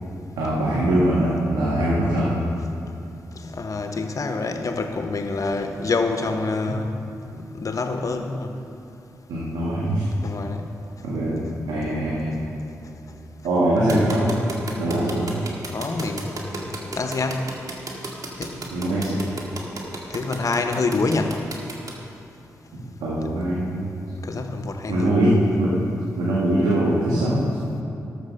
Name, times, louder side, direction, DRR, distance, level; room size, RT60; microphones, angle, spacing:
voice 1, 0.4-2.4 9.3-10.1 11.0-12.3 13.4-14.3 14.8-15.4 18.7-19.2 22.7-23.9 24.9-25.7 26.2-27.6, right 1 dB, 90° right, -7 dB, 1.7 m, -22 dB
voice 2, 3.4-6.9 7.3-8.5 10.2-10.7 15.7-17.4 18.4-18.5 20.1-21.4 24.2-25.2, left 3 dB, 50° left, 5 dB, 1.1 m, -26 dB
sound 1, 13.9-21.9, right 3 dB, 55° right, 1.9 m, -33 dB
13.0 x 6.2 x 6.6 m, 2.7 s
supercardioid pair, 45°, 7 cm